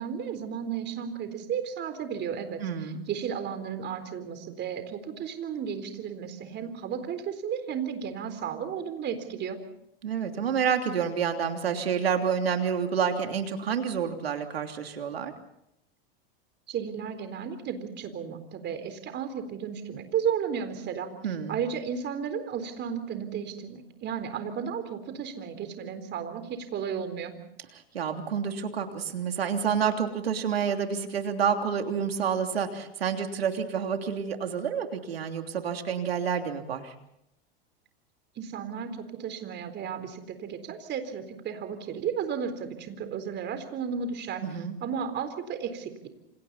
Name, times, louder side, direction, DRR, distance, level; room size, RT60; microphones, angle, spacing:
voice 1, 0.0-2.6 3.1-9.6 16.7-21.1 21.5-27.3 38.4-44.4 44.8-46.1, right 7 dB, 35° right, 9 dB, 4.0 m, -33 dB
voice 2, 2.6-3.0 10.0-15.3 21.2-21.6 27.7-36.9 44.4-44.8, right 7 dB, 90° right, 5 dB, 3.1 m, -29 dB
28.0 x 27.5 x 4.2 m, 0.79 s
hypercardioid pair, 100°, 29 cm